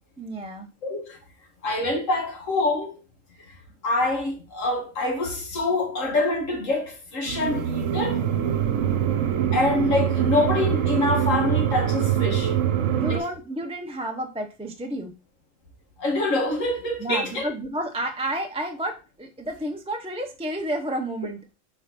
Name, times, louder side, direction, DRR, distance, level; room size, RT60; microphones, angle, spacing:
voice 1, 0.2-0.7 12.9-15.1 17.0-21.4, right 1 dB, 5° right, 0.5 m, -31 dB
voice 2, 0.8-1.2 1.6-2.9 3.8-8.2 9.5-12.5 13.1-13.3 16.0-17.5, left 2 dB, 85° left, 2.1 m, -25 dB
sound 1, 7.3-13.2, right 9 dB, 80° right, 1.2 m, -24 dB
4.7 x 4.4 x 5.9 m
omnidirectional pair, 1.3 m